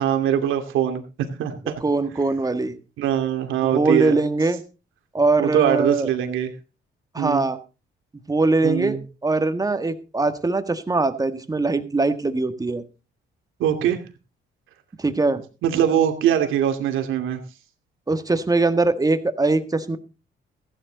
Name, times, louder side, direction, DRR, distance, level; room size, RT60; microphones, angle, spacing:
voice 1, 0.0-1.7 3.0-4.1 5.4-6.5 7.2-7.5 8.6-9.0 13.6-14.0 15.6-17.4, right 10 dB, 90° right, 5 dB, 2.6 m, -22 dB
voice 2, 1.8-2.7 3.6-4.6 5.1-6.1 7.1-7.6 8.3-12.8 15.0-15.4 18.1-20.0, right 3 dB, 20° right, 9 dB, 1.7 m, -22 dB
15.5 x 11.0 x 4.0 m, 0.32 s
cardioid pair, 90°, 20 cm